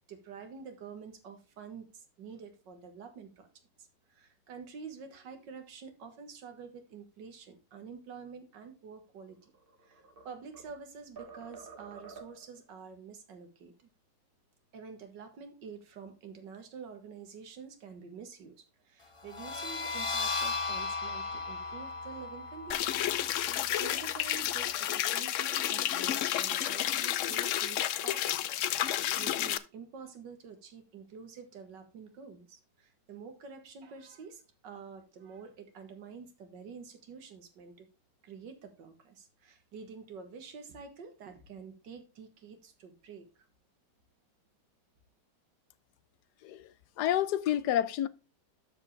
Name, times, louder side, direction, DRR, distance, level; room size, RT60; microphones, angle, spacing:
voice 1, 0.0-3.5 3.8-9.5 9.8-13.9 14.7-37.9 38.2-43.5, right 6 dB, 80° right, 2.1 m, -48 dB
sound 1, 9.4-10.8 11.2-12.6, right 5 dB, 35° right, 1.1 m, -50 dB
sound 2, 19.2-24.7, left 3 dB, 45° left, 0.4 m, -37 dB
sound 3, 22.7-29.6, left 12 dB, 90° left, 0.6 m, -31 dB
voice 2, 47.0-48.1, left 11 dB, 75° left, 1.1 m, -29 dB
12.5 x 4.9 x 3.3 m
omnidirectional pair, 1.9 m